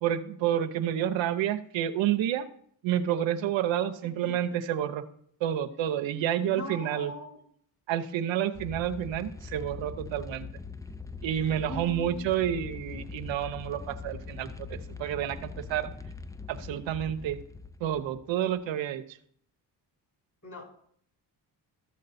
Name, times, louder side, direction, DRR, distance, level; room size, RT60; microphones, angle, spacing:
voice 1, 0.0-2.5 2.8-5.0 5.4-7.1 7.9-10.5 11.2-15.9 16.5-17.4 17.8-19.0, right 10 dB, 90° right, 8 dB, 0.8 m, -29 dB
voice 2, 4.0-4.4 6.4-7.4 11.6-12.8 20.4-20.7, left 3 dB, 40° left, 1 dB, 4.1 m, -42 dB
sound 1, 8.5-18.6, left 4 dB, 10° left, 0.5 m, -42 dB
14.0 x 6.5 x 4.2 m, 0.64 s
cardioid pair, 65°, 44 cm